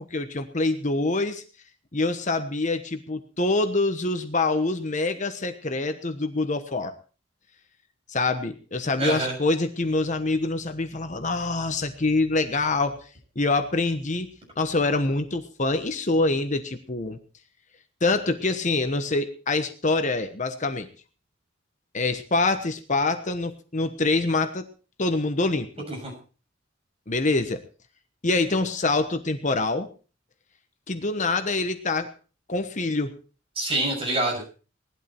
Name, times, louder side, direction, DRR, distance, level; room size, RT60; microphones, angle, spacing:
voice 1, 0.0-1.4 1.9-6.9 8.1-13.0 13.3-14.3 14.6-17.2 18.0-20.9 21.9-24.7 25.0-25.7 27.1-27.6 28.2-29.9 30.9-32.1 32.5-33.2, left 3 dB, 40° left, 8 dB, 1.1 m, -25 dB
voice 2, 9.0-9.3 25.9-26.1 33.5-34.5, right 2 dB, 30° right, 0 dB, 6.7 m, -26 dB
19.0 x 12.0 x 4.5 m, 0.37 s
head